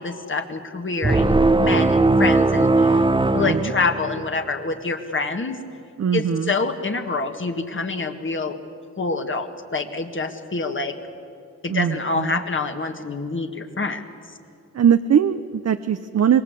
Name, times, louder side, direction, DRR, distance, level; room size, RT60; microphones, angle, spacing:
voice 1, 0.0-3.1 3.3-5.6 6.1-8.6 9.0-11.0 11.6-14.0, left 3 dB, 45° left, 6 dB, 1.9 m, -26 dB
sound 1, 1.0-4.4, right 2 dB, 15° right, 0.8 m, -19 dB
voice 2, 3.3-3.7 6.0-6.5 11.7-12.4 14.7-16.4, right 8 dB, 60° right, 9 dB, 0.7 m, -21 dB
25.5 x 22.0 x 8.3 m, 2.6 s
wide cardioid pair, 100°, 29 cm